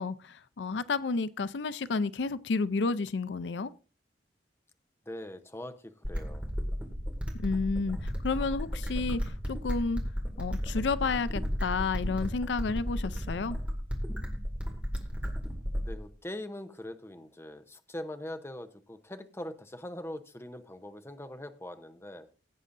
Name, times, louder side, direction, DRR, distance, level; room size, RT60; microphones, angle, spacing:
voice 1, 0.0-3.7 7.4-9.2 9.5-10.0 10.4-13.6, left 4 dB, 90° left, 0.5 m, -31 dB
voice 2, 5.1-6.4 15.8-22.3, left 1 dB, 15° left, 0.8 m, -42 dB
sound 1, 6.0-16.0, equal, 5° right, 2.1 m, -34 dB
16.5 x 8.4 x 2.6 m
head